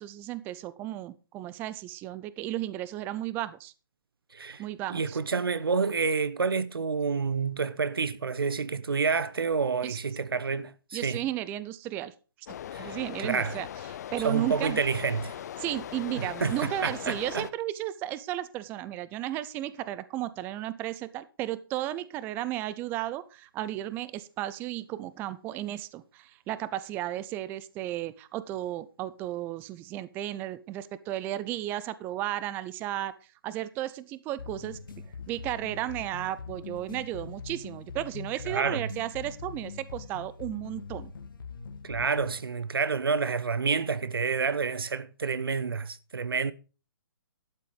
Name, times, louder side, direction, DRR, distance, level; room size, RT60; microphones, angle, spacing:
voice 1, 0.0-3.7 4.6-5.2 9.8-10.0 10.9-12.1 12.8-14.8 15.6-33.1 33.4-34.8 35.3-41.1, right 14 dB, 15° right, 0.5 m, -34 dB
voice 2, 4.3-11.2 12.7-13.6 14.2-15.3 16.0-17.5 38.4-38.9 41.8-46.5, right 5 dB, 85° right, 0.9 m, -29 dB
sound 1, 12.5-17.5, left 10 dB, 45° left, 0.5 m, -40 dB
sound 2, 34.4-42.4, left 5 dB, 65° left, 1.6 m, -42 dB
12.0 x 7.7 x 5.2 m
hypercardioid pair, 145°, 12 cm